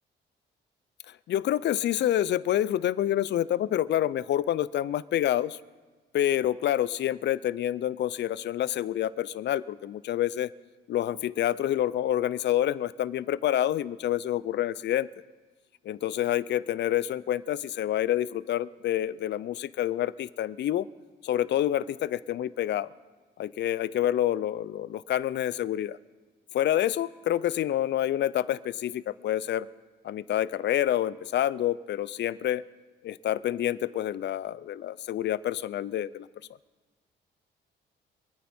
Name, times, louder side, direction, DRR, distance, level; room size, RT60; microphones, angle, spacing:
voice 1, 1.3-5.6 6.1-10.5 10.9-15.1 15.8-20.9 21.2-22.9 23.4-26.0 26.5-29.7 30.0-32.6 33.0-36.3, left 12 dB, 60° left, 19 dB, 0.5 m, -27 dB
25.0 x 9.4 x 4.3 m, 1.3 s
cardioid pair, 90°, 20 cm